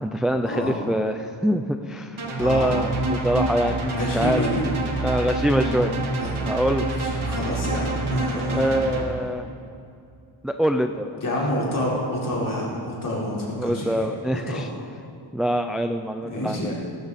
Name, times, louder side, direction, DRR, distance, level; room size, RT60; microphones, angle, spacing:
voice 1, 0.0-4.5 5.0-5.9 6.5-6.9 8.3-9.5 10.4-11.2 13.6-14.7 15.3-16.7, equal, ahead, 6 dB, 0.3 m, -24 dB
sound 1, 2.2-9.0, right 2 dB, 75° right, 2.0 m, -27 dB
voice 2, 2.4-2.7 3.9-4.6 6.2-6.4 6.9-8.7 11.2-14.0 14.3-14.6 16.3-16.7, left 1 dB, 40° left, -5 dB, 4.0 m, -28 dB
18.5 x 13.0 x 4.2 m, 2.6 s
wide cardioid pair, 160°, 49 cm